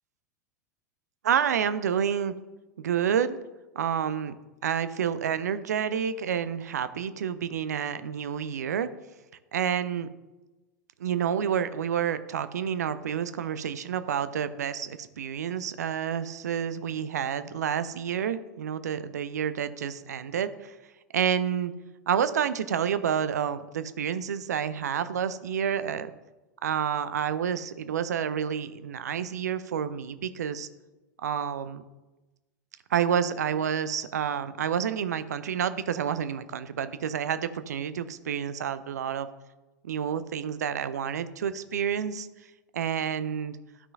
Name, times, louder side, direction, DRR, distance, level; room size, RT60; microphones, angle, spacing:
voice 1, 1.2-2.3 2.8-3.4 3.7-4.3 4.6-8.9 9.5-10.1 11.0-20.8 21.1-21.7 22.1-26.1 26.6-30.7 31.2-31.8 32.9-39.3 39.8-42.3 42.7-43.6, right 8 dB, 65° right, 13 dB, 0.4 m, -29 dB
12.5 x 5.5 x 2.6 m, 1.1 s
figure-of-eight pair, 90°, 10 cm